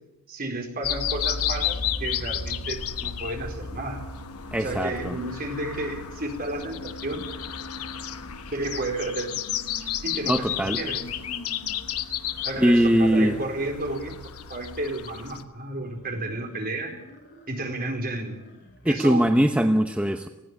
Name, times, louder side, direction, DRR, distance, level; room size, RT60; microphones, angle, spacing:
voice 1, 0.3-4.0 4.6-7.3 8.5-9.4 10.0-11.1 12.4-14.2 14.5-17.0 17.5-18.4 18.9-19.2, right 2 dB, 40° right, 3 dB, 4.3 m, -32 dB
sound 1, 0.8-15.4, left 8 dB, 80° left, 1.3 m, -32 dB
sound 2, 3.4-4.7 5.8-12.6 15.7-19.5, left 1 dB, 50° left, 7.0 m, -49 dB
voice 2, 4.5-5.2 10.3-10.8 12.6-13.4 18.8-20.3, equal, 5° right, 6 dB, 0.9 m, -21 dB
20.0 x 16.5 x 9.6 m, 0.96 s
head